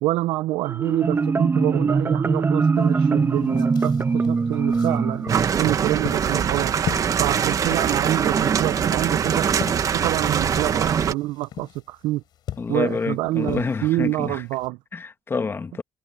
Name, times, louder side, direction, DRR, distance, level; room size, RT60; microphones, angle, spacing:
voice 1, 0.0-5.2 5.6-6.7 7.2-9.5 9.9-12.2 12.7-14.8, right 17 dB, 85° right, 0.6 m, -26 dB
Marimba xylophone, 0.7-6.2, right 4 dB, 30° right, 1.5 m, -22 dB
sound 1, 2.8-2.9 3.2-14.7, left 11 dB, 65° left, 4.6 m, -39 dB
sound 2, 5.3-11.1, right 7 dB, 45° right, 1.4 m, -22 dB
voice 2, 12.6-14.4 14.9-15.8, left 4 dB, 30° left, 1.8 m, -27 dB
cardioid pair, 90°, 8 cm